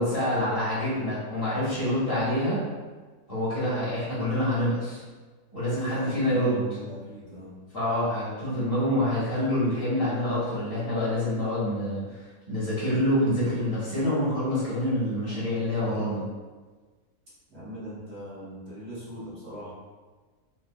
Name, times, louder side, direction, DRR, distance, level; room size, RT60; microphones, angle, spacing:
voice 1, 0.0-2.6 3.3-5.0 5.5-6.6 7.7-12.0 12.5-16.3, left 1 dB, 40° left, -10 dB, 1.4 m, -26 dB
voice 2, 5.7-7.6 17.5-19.7, equal, 50° right, -10 dB, 1.2 m, -40 dB
3.8 x 3.1 x 2.2 m, 1.3 s
omnidirectional pair, 1.6 m